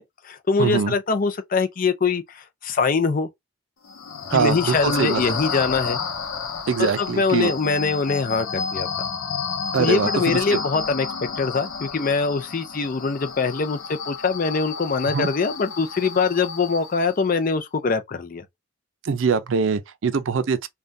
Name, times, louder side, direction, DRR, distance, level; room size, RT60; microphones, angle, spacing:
voice 1, 0.0-3.3 4.3-6.0 6.8-8.9 9.8-11.1 11.4-18.4, left 4 dB, 40° left, 0.5 m, -23 dB
voice 2, 0.6-0.9 4.3-5.4 6.7-7.5 9.7-10.6 15.0-15.3 19.0-20.7, right 5 dB, 65° right, 0.4 m, -23 dB
sound 1, 3.8-17.3, left 5 dB, 85° left, 0.7 m, -31 dB
3.5 x 2.2 x 2.6 m
head